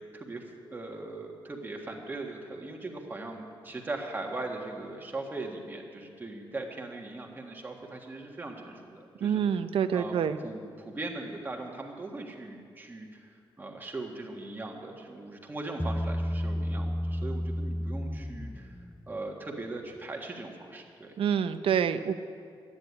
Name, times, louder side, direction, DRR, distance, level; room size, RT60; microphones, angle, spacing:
voice 1, 0.1-9.4 9.9-10.2 10.4-18.8 19.1-21.2, right 2 dB, 20° right, 1 dB, 1.6 m, -39 dB
voice 2, 9.2-10.4 21.2-22.1, right 8 dB, 80° right, 11 dB, 0.7 m, -27 dB
Bass guitar, 15.8-19.2, equal, 5° left, 0.3 m, -32 dB
12.5 x 9.9 x 9.7 m, 2.3 s
wide cardioid pair, 175°, 9 cm